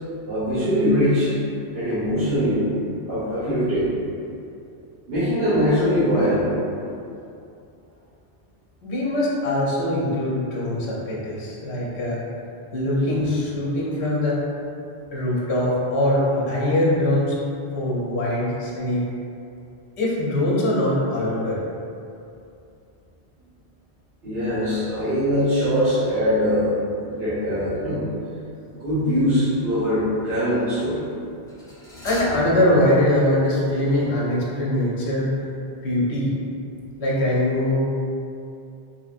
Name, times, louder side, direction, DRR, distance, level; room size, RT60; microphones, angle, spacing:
voice 1, 0.2-1.3 1.7-2.6 3.1-3.9 5.1-6.5 24.2-26.8 27.0-28.0 28.7-31.0, equal, 65° right, -14 dB, 1.2 m, -22 dB
voice 2, 8.8-12.2 12.7-14.4 15.1-17.4 17.7-19.0 20.0-21.6 32.0-35.3 35.8-36.3 37.0-37.8, left 1 dB, 75° left, -5 dB, 1.0 m, -22 dB
sound 1, 29.0-29.4 31.5-34.3 34.5-34.6, equal, 5° left, 1.0 m, -39 dB
3.7 x 2.9 x 2.4 m, 2.6 s
omnidirectional pair, 1.1 m